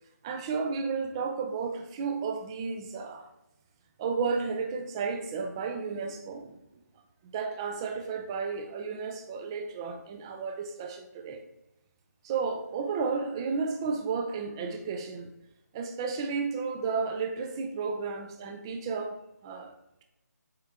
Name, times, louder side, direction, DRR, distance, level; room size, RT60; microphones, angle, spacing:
voice 1, 0.2-3.3 4.0-6.6 7.3-11.4 12.2-15.3 15.7-19.2 19.4-19.7, right 5 dB, 15° right, 5 dB, 0.5 m, -32 dB
7.6 x 3.4 x 3.6 m, 0.90 s
figure-of-eight pair, 160°, 9 cm